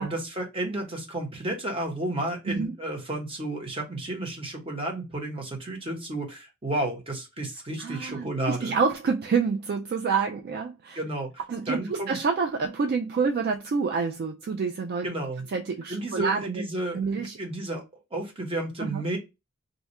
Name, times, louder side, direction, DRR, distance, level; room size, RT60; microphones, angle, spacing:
voice 1, 0.0-8.8 11.0-11.3 11.7-12.2 15.0-15.4 15.9-17.8 18.1-19.2, right 1 dB, 25° right, 0.9 m, -32 dB
voice 2, 7.8-11.0 11.5-15.1 15.5-16.5 16.9-17.4 18.8-19.0, right 5 dB, 45° right, 0.3 m, -27 dB
2.7 x 2.3 x 4.1 m
head